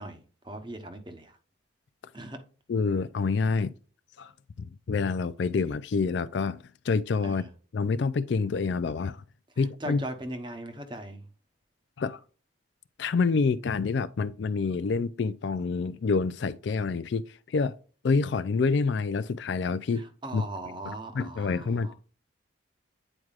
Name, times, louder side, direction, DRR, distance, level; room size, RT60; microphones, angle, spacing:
voice 1, 0.0-1.4 2.1-2.4 7.2-7.5 9.5-11.3 19.9-21.9, right 1 dB, 25° right, 1.0 m, -39 dB
voice 2, 2.7-3.7 4.2-4.3 4.6-7.4 7.7-9.2 9.6-10.0 12.0-12.2 13.0-17.7 18.0-20.0 20.3-20.4 21.2-21.9, left 4 dB, 60° left, 0.4 m, -27 dB
8.8 x 4.7 x 2.4 m
head